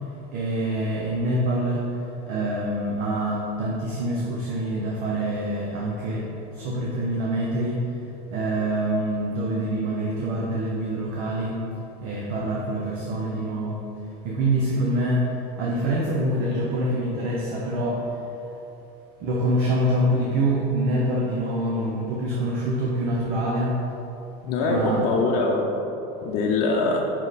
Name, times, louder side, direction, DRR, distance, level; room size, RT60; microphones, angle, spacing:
voice 1, 0.3-1.9 2.3-7.9 8.3-11.6 12.0-13.8 14.2-18.1 19.2-23.8 24.7-25.2, right 1 dB, 55° right, -3 dB, 0.9 m, -25 dB
voice 2, 24.4-25.8 26.2-27.0, left 3 dB, 65° left, -2 dB, 0.7 m, -23 dB
5.7 x 5.2 x 4.1 m, 3.0 s
cardioid pair, 145°, 19 cm